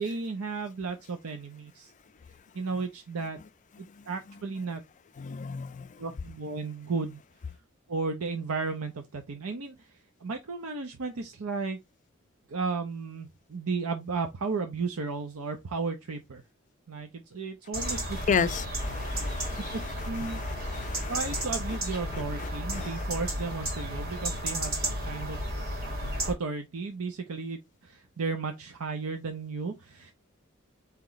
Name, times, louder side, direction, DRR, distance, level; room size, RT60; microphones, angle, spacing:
voice 1, 0.0-1.9 2.5-3.4 4.1-4.8 6.0-7.2 7.9-11.8 12.5-16.4 16.9-18.5 19.7-20.4 21.1-25.4 26.3-30.1, right 4 dB, 85° right, 0.7 m, -34 dB
voice 2, 5.2-5.9 18.3-19.7 20.3-21.1 22.1-22.9, left 6 dB, 35° left, 0.4 m, -32 dB
sound 1, 17.7-26.3, equal, 45° right, 2.0 m, -33 dB
4.4 x 3.0 x 3.9 m
head